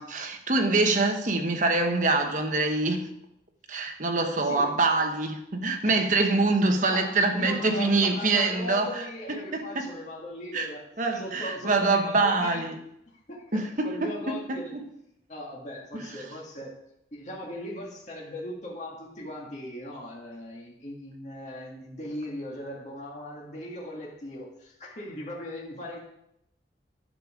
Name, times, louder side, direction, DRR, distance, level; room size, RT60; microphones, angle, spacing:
voice 1, 0.0-3.1 3.7-9.9 10.5-10.7 11.0-12.8 13.5-13.9 14.3-14.8, right 3 dB, 45° right, 1.1 m, -25 dB
voice 2, 4.4-4.7 5.8-6.4 6.9-10.8 11.1-12.6 13.1-14.7 15.3-16.8 17.1-26.0, left 1 dB, 40° left, 1.8 m, -39 dB
10.0 x 6.7 x 4.9 m
head